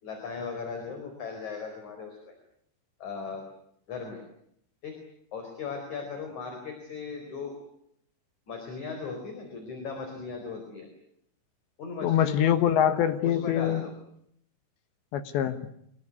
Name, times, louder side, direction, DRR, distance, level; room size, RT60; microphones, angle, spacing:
voice 1, 0.0-2.3 3.0-3.4 3.9-4.2 4.8-5.0 5.3-7.6 8.5-10.9 11.8-12.7 13.2-13.9, left 5 dB, 40° left, 4 dB, 5.5 m, -37 dB
voice 2, 12.0-13.8 15.1-15.6, left 10 dB, 70° left, 10 dB, 3.3 m, -24 dB
27.0 x 20.5 x 9.6 m, 0.71 s
omnidirectional pair, 5.8 m